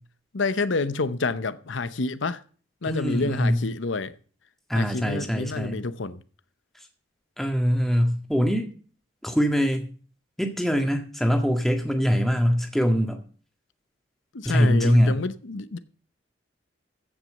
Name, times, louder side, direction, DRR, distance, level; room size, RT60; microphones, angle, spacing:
voice 1, 0.3-2.4 2.8-4.1 4.7-6.2 14.3-15.8, left 3 dB, 80° left, 0.8 m, -28 dB
voice 2, 2.9-3.7 4.7-5.8 7.4-8.7 9.2-9.9 10.4-13.2 14.4-15.2, equal, ahead, 1.8 m, -23 dB
15.0 x 6.1 x 7.7 m
head